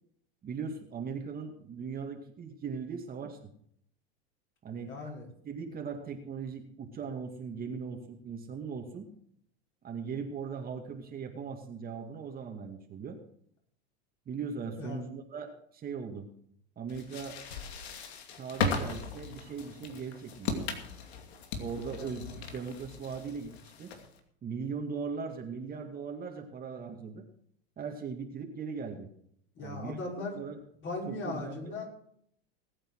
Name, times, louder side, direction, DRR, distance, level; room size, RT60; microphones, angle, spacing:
voice 1, 0.4-3.5 4.6-4.9 5.4-9.1 9.8-13.2 14.3-16.3 16.8-17.4 18.4-20.8 21.6-23.9 24.4-27.3 27.8-29.1 29.6-30.6 31.1-31.8, right 5 dB, 30° right, 3 dB, 2.2 m, -39 dB
voice 2, 4.9-5.2 14.8-15.1 21.9-22.2 29.6-30.4 30.8-31.9, left 2 dB, 35° left, -1 dB, 6.1 m, -38 dB
sound 1, 16.9-24.2, left 4 dB, 80° left, 2.6 m, -37 dB
20.0 x 8.9 x 4.8 m, 0.66 s
supercardioid pair, 115°, 31 cm